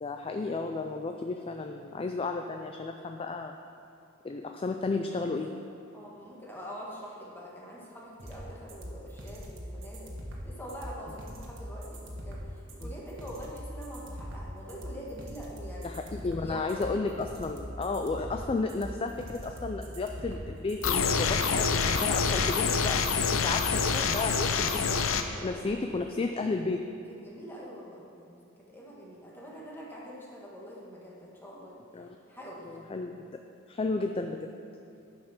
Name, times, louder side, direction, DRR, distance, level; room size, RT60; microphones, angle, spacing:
voice 1, 0.0-3.5 4.2-5.5 12.8-12.9 15.8-26.8 31.9-32.1 32.7-33.4 33.7-34.5, left 3 dB, 25° left, 4 dB, 0.3 m, -33 dB
voice 2, 5.9-10.1 10.4-15.9 16.4-16.9 25.3-25.6 27.2-28.4 28.7-31.8 32.3-32.7, equal, 10° left, -5 dB, 1.6 m, -44 dB
sound 1, 8.2-24.2, equal, 65° right, 1.4 m, -41 dB
sound 2, 20.8-25.2, left 5 dB, 75° left, 0.6 m, -26 dB
10.5 x 5.5 x 6.0 m, 2.7 s
head